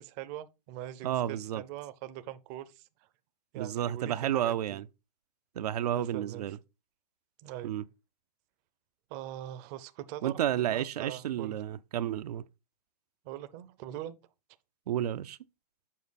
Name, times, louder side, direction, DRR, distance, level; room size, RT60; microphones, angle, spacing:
voice 1, 0.0-2.9 3.5-4.8 5.8-6.5 7.4-7.7 9.1-11.6 13.2-14.2, right 13 dB, 30° right, 0.6 m, -42 dB
voice 2, 1.0-1.6 3.5-4.8 5.6-6.6 7.6-7.8 10.2-12.4 14.9-15.4, right 11 dB, 70° right, 0.5 m, -31 dB
7.4 x 5.0 x 4.0 m
hypercardioid pair, 155°, 21 cm